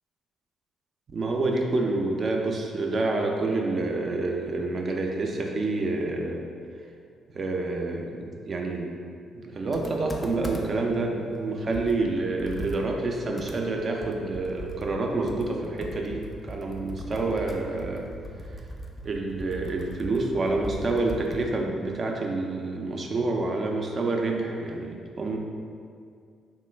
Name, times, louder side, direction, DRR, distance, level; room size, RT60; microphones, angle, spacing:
voice 1, 1.1-6.4 7.3-8.9 9.3-18.1 19.0-25.4, right 2 dB, 45° right, 1 dB, 0.4 m, -28 dB
Computer keyboard, 9.7-10.9 11.3-11.4 11.7-21.6, equal, 25° left, 0.3 m, -39 dB
3.0 x 2.1 x 3.3 m, 2.3 s
cardioid pair, 90°, 0 cm